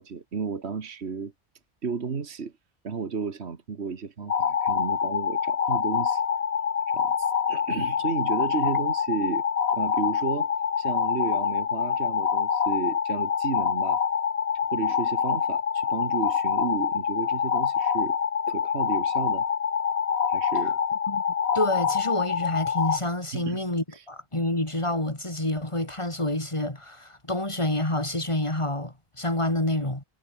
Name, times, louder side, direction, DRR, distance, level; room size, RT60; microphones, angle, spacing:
voice 1, 0.0-1.3 1.8-2.5 2.8-6.2 6.9-9.4 9.7-10.5 10.8-14.0 14.7-18.2 18.5-19.5 20.3-20.8 23.3-23.6 23.9-24.1, right 5 dB, 70° right, 1.9 m, -33 dB
sound 1, 4.3-23.0, left 7 dB, 65° left, 1.3 m, -26 dB
voice 2, 21.5-30.0, left 1 dB, 25° left, 3.4 m, -28 dB
omnidirectional pair, 1.1 m